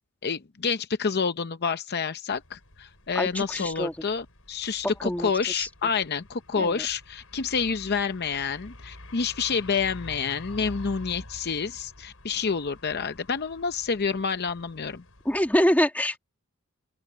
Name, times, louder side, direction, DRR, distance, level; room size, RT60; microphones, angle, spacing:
voice 1, 0.2-15.0, left 5 dB, 45° left, 0.7 m, -28 dB
sound 1, 2.3-15.6, left 1 dB, 70° left, 6.7 m, -48 dB
voice 2, 3.2-3.9 5.0-5.7 6.6-6.9 15.3-16.2, equal, 5° left, 1.7 m, -25 dB
open air
head